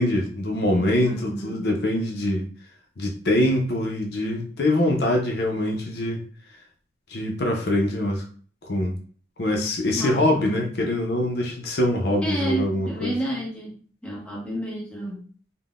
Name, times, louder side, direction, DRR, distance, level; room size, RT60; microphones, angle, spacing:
voice 1, 0.0-2.4 3.0-6.2 7.1-8.2 8.6-9.0 9.4-13.1, left 1 dB, 60° left, 1 dB, 0.5 m, -24 dB
voice 2, 1.0-1.7 10.0-10.6 12.2-15.3, right 1 dB, 5° left, -5 dB, 0.8 m, -31 dB
3.6 x 2.1 x 2.4 m, 0.43 s
head